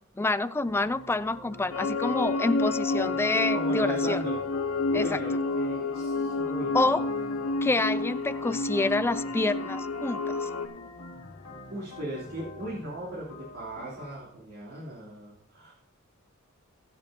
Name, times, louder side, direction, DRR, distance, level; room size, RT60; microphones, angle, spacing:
voice 1, 0.2-4.2 4.9-5.2 6.7-7.1 7.6-10.5, left 2 dB, 10° left, 14 dB, 0.4 m, -27 dB
sound 1, 0.6-14.2, left 2 dB, 65° left, 1.6 m, -46 dB
sound 2, 1.7-10.7, left 3 dB, 80° left, 0.8 m, -29 dB
voice 2, 3.5-4.4 4.9-7.0 11.7-15.7, right 1 dB, 65° right, -8 dB, 3.1 m, -38 dB
22.0 x 7.5 x 2.8 m, 0.68 s
head